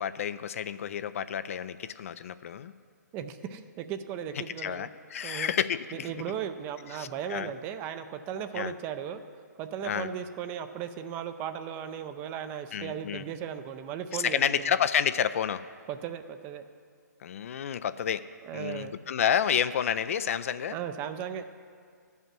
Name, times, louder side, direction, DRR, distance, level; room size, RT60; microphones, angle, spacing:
voice 1, 0.0-2.7 4.6-6.1 6.9-7.5 8.5-8.7 9.8-10.1 12.7-13.2 14.2-15.6 17.2-18.2 18.5-20.8, left 8 dB, 50° left, 13 dB, 0.4 m, -30 dB
voice 2, 3.1-4.9 5.2-5.5 5.9-9.2 9.6-14.6 15.9-16.6 18.4-19.0 20.7-21.5, right 9 dB, 20° right, 9 dB, 0.5 m, -36 dB
12.0 x 5.5 x 7.4 m, 2.2 s
hypercardioid pair, 140°, 10 cm